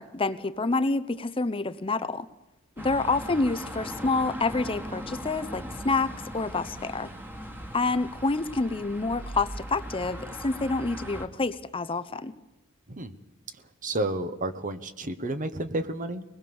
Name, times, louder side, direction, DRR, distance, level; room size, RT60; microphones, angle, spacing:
voice 1, 0.0-2.3 2.8-7.1 7.7-12.3, left 3 dB, 25° left, 12 dB, 0.7 m, -28 dB
sound 1, 2.8-11.3, equal, 10° right, 1.7 m, -39 dB
voice 2, 13.8-16.2, right 1 dB, 40° right, 11 dB, 1.2 m, -31 dB
23.0 x 20.0 x 7.1 m, 0.99 s
head